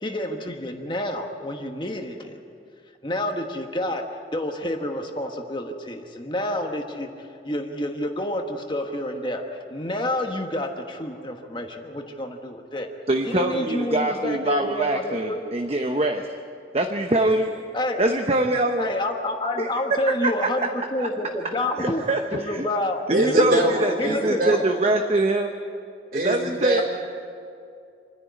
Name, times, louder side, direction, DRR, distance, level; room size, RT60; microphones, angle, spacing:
voice 1, 0.0-2.4 3.0-4.0 4.3-7.1 7.4-9.4 9.7-12.9 13.2-15.4 17.7-18.0 18.8-22.0 22.3-24.6, left 1 dB, 25° left, 3 dB, 1.4 m, -28 dB
voice 2, 13.1-16.3 16.7-17.6 18.0-18.9 19.6-20.7 21.0-21.1 21.4-21.5 21.8-22.7 23.1-25.5 26.1-26.8, right 2 dB, 35° right, 4 dB, 0.9 m, -24 dB
voice 3, 23.1-24.6 26.1-26.8, right 1 dB, 55° right, 0 dB, 4.4 m, -24 dB
27.0 x 10.5 x 9.5 m, 2.4 s
head